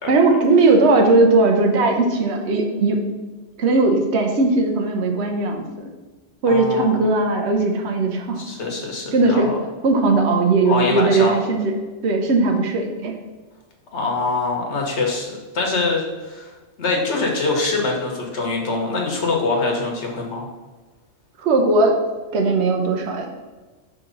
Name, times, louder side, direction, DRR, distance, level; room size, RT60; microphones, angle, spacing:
voice 1, 0.1-3.0 3.6-5.9 6.4-8.4 9.1-9.5 9.8-11.7 12.0-13.2 21.4-22.0 22.3-23.3, right 3 dB, 70° right, 3 dB, 1.0 m, -18 dB
voice 2, 6.5-7.1 8.4-9.5 10.6-11.3 13.9-16.5 16.8-20.5, left 3 dB, 70° left, 0 dB, 1.4 m, -24 dB
6.2 x 3.0 x 5.1 m, 1.3 s
omnidirectional pair, 1.2 m